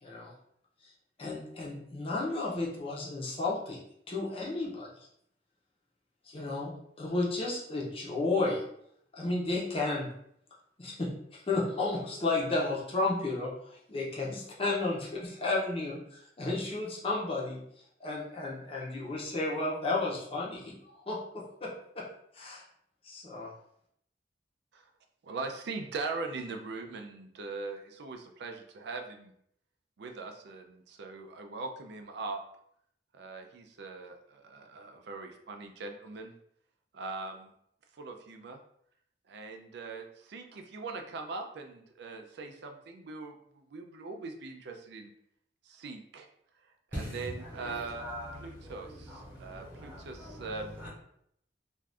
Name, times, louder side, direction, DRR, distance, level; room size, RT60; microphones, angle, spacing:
voice 1, 0.0-0.3 1.2-3.8 4.1-4.9 6.3-8.6 9.1-10.1 10.8-17.6 18.0-20.7 21.1-22.0 22.4-22.6 23.0-23.5, left 2 dB, 30° left, -3 dB, 0.7 m, -33 dB
voice 2, 25.2-29.3 30.0-32.4 33.1-36.3 36.9-37.5 37.9-38.6 39.3-45.1 45.6-46.3 47.1-48.1 48.4-50.7, right 3 dB, 65° right, 5 dB, 0.4 m, -41 dB
voice 3, 46.9-50.9, equal, 10° right, -7 dB, 1.0 m, -42 dB
2.5 x 2.3 x 3.3 m, 0.70 s
head